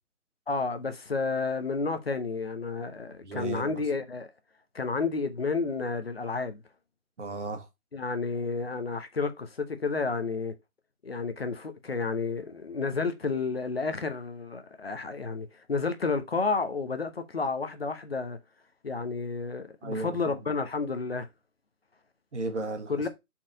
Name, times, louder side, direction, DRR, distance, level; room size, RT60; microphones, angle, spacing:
voice 1, 0.5-4.3 4.7-6.6 7.9-10.5 11.0-18.4 18.8-21.3 22.9-23.1, left 4 dB, 40° left, 0.9 m, -31 dB
voice 2, 3.2-3.8 7.2-7.7 19.8-20.4 22.3-23.1, right 3 dB, 50° right, 1.9 m, -35 dB
5.7 x 4.6 x 4.5 m
figure-of-eight pair, 165°, 45 cm